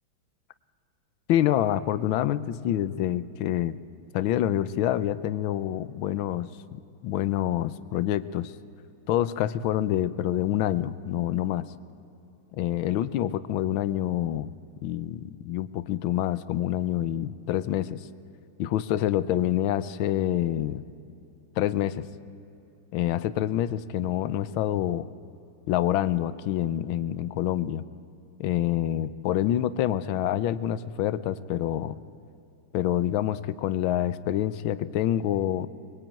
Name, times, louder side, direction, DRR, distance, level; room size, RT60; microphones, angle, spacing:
voice 1, 1.3-3.8 4.1-6.5 7.0-8.5 9.1-11.6 12.6-14.5 14.8-18.1 18.6-20.8 21.6-22.0 22.9-25.1 25.7-27.8 28.4-32.0 32.7-35.7, left 12 dB, 70° left, 15 dB, 1.5 m, -27 dB
23.5 x 21.5 x 9.0 m, 2.8 s
omnidirectional pair, 2.4 m